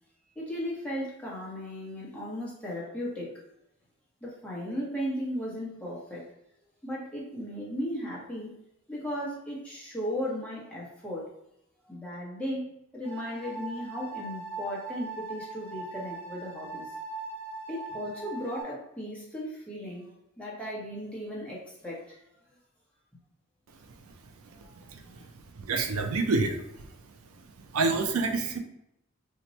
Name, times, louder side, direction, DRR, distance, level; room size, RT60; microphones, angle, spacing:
voice 1, 0.4-3.4 4.2-6.3 6.8-8.5 8.9-11.3 11.9-16.9 17.7-22.2 24.5-24.7 25.1-25.2, equal, 5° left, -5 dB, 0.9 m, -36 dB
sound 1, 13.0-18.6, right 3 dB, 30° right, 1.0 m, -40 dB
voice 2, 25.6-26.6 27.7-28.6, right 3 dB, 75° right, 5 dB, 0.4 m, -27 dB
2.9 x 2.2 x 3.9 m, 0.79 s
head